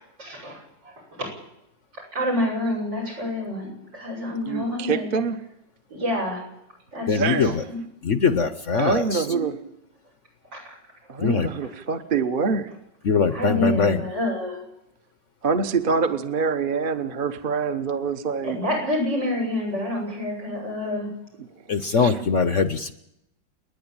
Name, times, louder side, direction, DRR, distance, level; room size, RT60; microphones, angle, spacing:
voice 1, 0.2-1.3 2.1-5.1 5.9-6.4 6.9-7.8 9.2-9.4 10.5-10.6 13.3-14.6 18.4-21.1, left 1 dB, 80° right, 1 dB, 8.3 m, -28 dB
voice 2, 4.5-5.4 7.2-7.6 8.8-9.5 11.1-12.7 15.4-18.6 22.0-22.1, right 5 dB, 35° right, 8 dB, 1.2 m, -25 dB
voice 3, 7.1-7.6 8.0-9.3 11.2-11.5 13.0-14.0 21.7-22.9, left 5 dB, 50° left, 12 dB, 1.0 m, -22 dB
30.0 x 10.5 x 8.9 m, 0.83 s
omnidirectional pair, 1.9 m